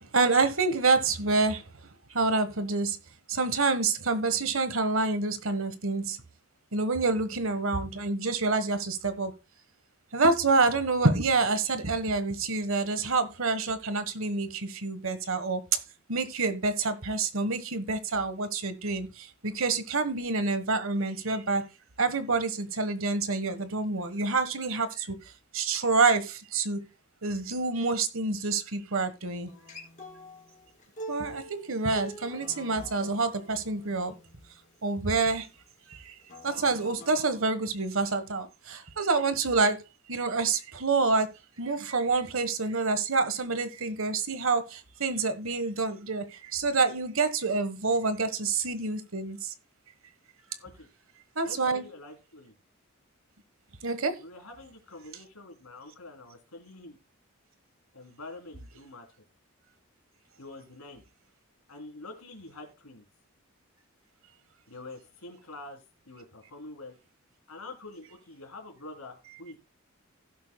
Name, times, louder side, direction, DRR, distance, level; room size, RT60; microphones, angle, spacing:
voice 1, 0.0-1.6 2.1-3.0 3.3-6.2 6.7-9.3 10.1-15.8 16.1-21.6 22.0-25.1 25.5-26.8 27.2-29.5 31.1-34.1 34.8-35.5 35.9-36.1 36.4-39.8 40.1-41.3 41.6-49.5 51.3-51.8 53.8-54.2, right 3 dB, 65° right, 1.2 m, -27 dB
Acoustic guitar, 29.5-34.7 36.2-37.5, equal, 35° left, 2.7 m, -46 dB
voice 2, 51.4-52.5 54.2-57.0 57.9-59.0 60.4-61.0 61.7-63.0 64.7-65.8 66.1-66.9 67.5-69.6, left 2 dB, 90° left, 3.2 m, -46 dB
16.5 x 7.5 x 2.2 m
head